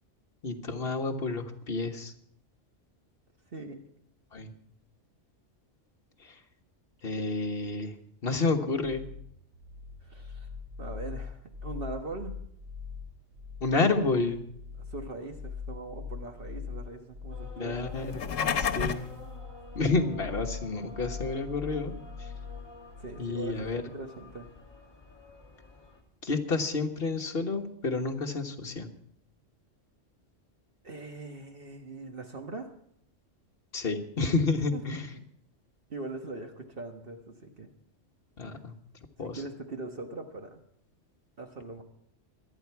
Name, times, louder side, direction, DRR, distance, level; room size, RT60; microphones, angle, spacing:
voice 1, 0.4-2.1 4.3-4.5 7.0-7.9 8.2-9.0 13.6-14.4 17.5-19.1 19.7-21.9 23.2-23.8 26.2-28.9 33.7-35.1 38.4-38.7 39.2-39.4, left 3 dB, 50° left, 3 dB, 1.6 m, -30 dB
voice 2, 3.5-3.8 10.0-10.5 10.8-12.4 14.8-17.8 23.0-24.5 30.8-32.7 34.7-35.3 35.9-37.7 38.4-38.6 39.2-40.6 41.4-41.8, right 3 dB, 50° right, 4 dB, 1.4 m, -41 dB
sound 1, 8.8-23.8, left 5 dB, 75° right, 5.5 m, -42 dB
sound 2, 17.3-26.0, left 3 dB, 20° left, 2.1 m, -49 dB
sound 3, 18.0-19.1, left 7 dB, 85° left, 1.3 m, -29 dB
24.5 x 9.3 x 4.6 m, 0.68 s
omnidirectional pair, 1.3 m